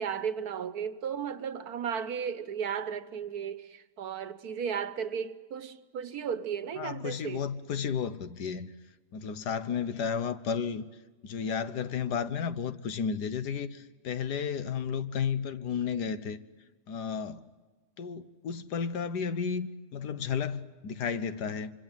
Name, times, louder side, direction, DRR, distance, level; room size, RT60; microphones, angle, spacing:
voice 1, 0.0-7.4, right 7 dB, 65° right, 1.6 m, -35 dB
voice 2, 6.8-8.7 9.1-10.9 11.2-16.4 16.9-17.4 18.0-21.7, left 6 dB, 80° left, 1.7 m, -33 dB
25.5 x 25.5 x 9.1 m
omnidirectional pair, 1.7 m